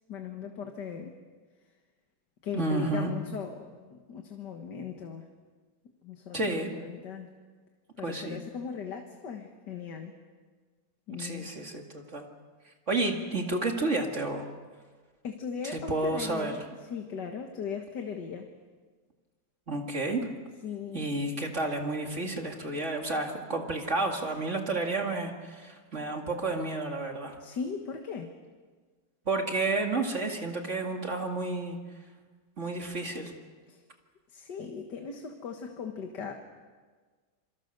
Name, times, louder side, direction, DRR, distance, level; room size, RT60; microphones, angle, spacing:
voice 1, 0.1-1.2 2.4-5.3 6.0-7.3 8.0-10.1 11.1-11.5 15.2-16.6 16.9-18.5 20.6-21.1 27.4-28.3 33.7-33.8 34.3-36.3, left 6 dB, 65° left, 4 dB, 2.1 m, -38 dB
voice 2, 2.5-3.1 6.3-6.7 8.0-8.4 11.2-12.3 12.9-14.5 15.7-16.5 19.7-20.3 20.9-27.4 29.3-31.8 32.6-33.3, right 2 dB, 40° right, 3 dB, 2.5 m, -31 dB
27.5 x 24.5 x 6.7 m, 1.5 s
omnidirectional pair, 2.1 m